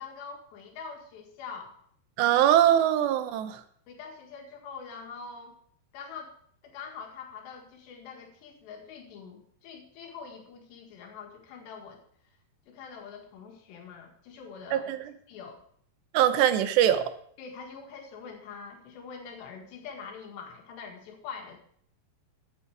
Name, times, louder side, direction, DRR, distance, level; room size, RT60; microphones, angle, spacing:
voice 1, 0.0-1.8 3.9-5.6 5.9-6.3 6.6-12.0 12.7-14.9 15.3-15.6 17.4-21.6, left 5 dB, 85° left, 2 dB, 4.0 m, -44 dB
voice 2, 2.2-3.6 14.7-15.0 16.1-17.0, right 11 dB, 90° right, 11 dB, 3.1 m, -22 dB
12.5 x 8.8 x 4.8 m, 0.62 s
omnidirectional pair, 4.8 m